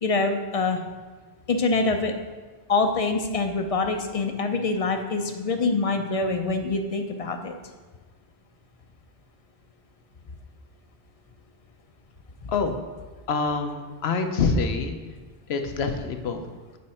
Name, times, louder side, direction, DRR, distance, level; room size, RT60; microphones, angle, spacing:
voice 1, 0.0-0.8 1.5-2.1 2.7-7.5, left 3 dB, 40° left, 6 dB, 0.6 m, -25 dB
voice 2, 13.3-15.0 15.5-16.5, left 4 dB, 75° left, 6 dB, 1.0 m, -26 dB
8.4 x 5.2 x 4.2 m, 1.4 s
omnidirectional pair, 1.1 m